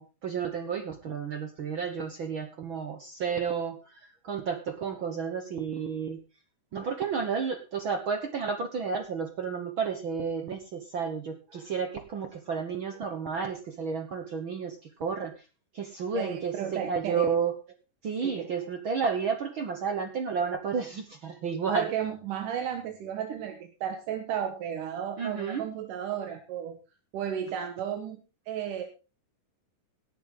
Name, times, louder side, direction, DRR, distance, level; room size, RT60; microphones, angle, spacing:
voice 1, 0.0-6.2 6.7-15.5 15.7-17.5 18.0-21.9 25.2-25.6, right 6 dB, 55° right, 6 dB, 1.4 m, -32 dB
voice 2, 16.1-17.3 18.2-18.5 21.7-26.8 27.1-28.2 28.5-28.8, right 9 dB, 80° right, 6 dB, 2.8 m, -33 dB
18.0 x 9.8 x 3.9 m, 0.31 s
omnidirectional pair, 3.8 m